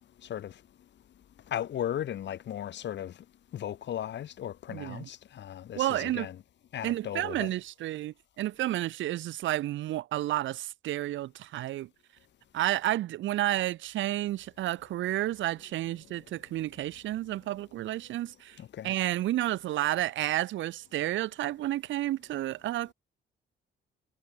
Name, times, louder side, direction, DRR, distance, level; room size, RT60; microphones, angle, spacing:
voice 1, 1.5-3.1 3.5-6.4 6.7-7.5 18.6-18.9, left 10 dB, 65° left, 1.5 m, -36 dB
voice 2, 4.7-5.1 5.8-6.3 6.8-11.9 12.5-22.9, right 14 dB, 75° right, 0.7 m, -31 dB
cardioid pair, 90°, 20 cm